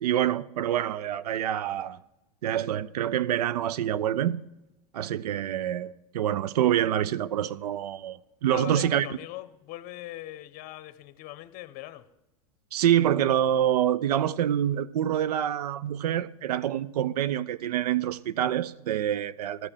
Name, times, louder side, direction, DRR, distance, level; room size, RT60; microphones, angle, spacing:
voice 1, 0.0-2.0 2.4-4.4 4.9-9.1 12.7-19.7, right 11 dB, 90° right, 0.4 m, -26 dB
voice 2, 8.5-12.1, left 16 dB, 50° left, 0.8 m, -40 dB
13.5 x 6.7 x 7.3 m
hypercardioid pair, 105°, 19 cm